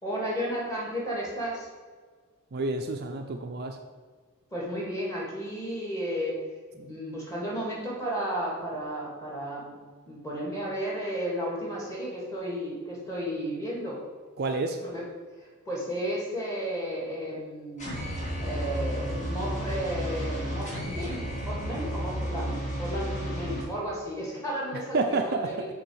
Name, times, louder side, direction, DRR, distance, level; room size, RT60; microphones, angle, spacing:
voice 1, 0.0-1.7 4.5-6.4 6.7-9.8 10.1-14.0 14.8-15.0 15.4-18.0 18.4-25.7, equal, 15° left, -4 dB, 2.1 m, -33 dB
voice 2, 2.5-3.8 14.4-14.8 24.7-25.7, right 3 dB, 45° right, 5 dB, 0.5 m, -29 dB
sound 1, 17.8-23.6, equal, 35° left, 1.7 m, -32 dB
6.7 x 4.0 x 6.3 m, 1.5 s
head